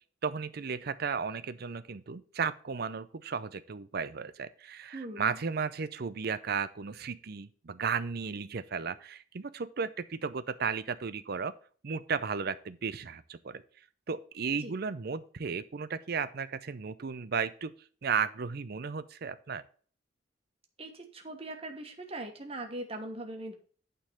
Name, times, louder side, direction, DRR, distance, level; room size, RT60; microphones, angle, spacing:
voice 1, 0.2-11.5 11.8-13.6 14.1-17.7 18.0-19.6, right 6 dB, 55° right, 14 dB, 0.6 m, -34 dB
voice 2, 4.9-5.4 14.6-14.7 20.8-23.5, right 1 dB, 30° right, 3 dB, 1.3 m, -40 dB
8.9 x 3.9 x 6.7 m, 0.43 s
head